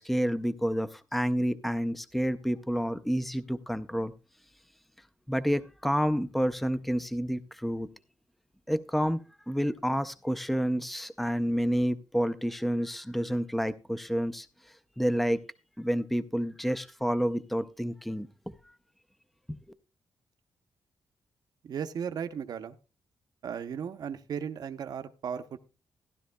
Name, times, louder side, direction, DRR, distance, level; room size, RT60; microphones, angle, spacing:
voice 1, 0.0-4.1 5.3-7.9 8.7-9.2 9.5-14.5 15.0-15.4 15.8-18.3, equal, ahead, 13 dB, 0.5 m, -29 dB
voice 2, 21.6-22.8 23.4-25.6, right 7 dB, 60° right, 10 dB, 0.7 m, -36 dB
15.5 x 11.5 x 2.2 m, 0.32 s
wide cardioid pair, 140°, 8 cm